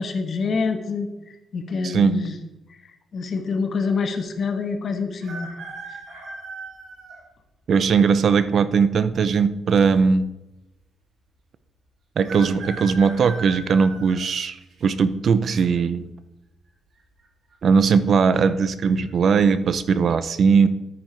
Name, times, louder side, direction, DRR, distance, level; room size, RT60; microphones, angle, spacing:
voice 1, 0.0-2.3 2.8-5.5 5.9-6.0, left 4 dB, 50° left, 6 dB, 1.4 m, -27 dB
voice 2, 1.8-2.2 7.7-10.3 12.2-16.1 17.6-20.7, right 5 dB, 55° right, 13 dB, 0.7 m, -19 dB
sound 1, 5.2-7.2 7.9-8.0 9.1-9.7 10.0-10.1 10.3-10.4 12.2-14.8 15.4-15.8 16.9-17.3 17.5-17.6 18.1-18.5 19.0-19.2, right 3 dB, 70° right, 3.8 m, -38 dB
13.5 x 9.2 x 4.6 m, 0.94 s
cardioid pair, 125°, 0 cm